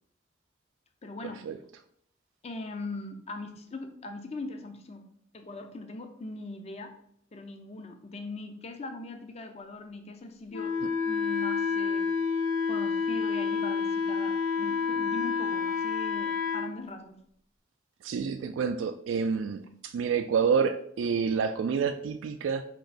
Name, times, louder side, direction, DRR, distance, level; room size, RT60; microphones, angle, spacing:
voice 1, 1.0-1.4 2.4-5.1 5.3-6.9 7.3-10.8 11.0-12.1 12.7-17.2, left 2 dB, 30° left, 6 dB, 0.4 m, -40 dB
Wind instrument woodwind instrument, 10.5-16.7, left 5 dB, 85° left, 0.7 m, -29 dB
voice 2, 18.0-22.6, right 6 dB, 75° right, 7 dB, 0.3 m, -28 dB
4.5 x 2.9 x 4.0 m, 0.69 s
head